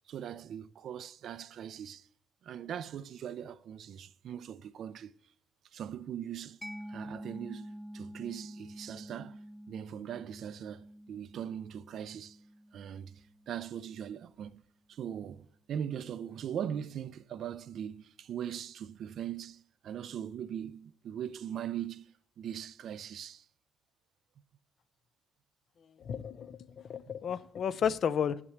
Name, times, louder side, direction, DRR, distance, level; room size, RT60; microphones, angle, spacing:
voice 1, 0.1-2.1 2.4-5.1 5.7-6.6 6.9-9.4 9.7-12.4 12.7-14.6 14.9-23.5, right 9 dB, 65° right, 0.5 m, -40 dB
Mallet percussion, 6.6-14.0, equal, 5° left, 0.5 m, -48 dB
voice 2, 26.0-28.4, left 7 dB, 60° left, 0.6 m, -32 dB
9.1 x 5.9 x 7.9 m
supercardioid pair, 65°, 0 cm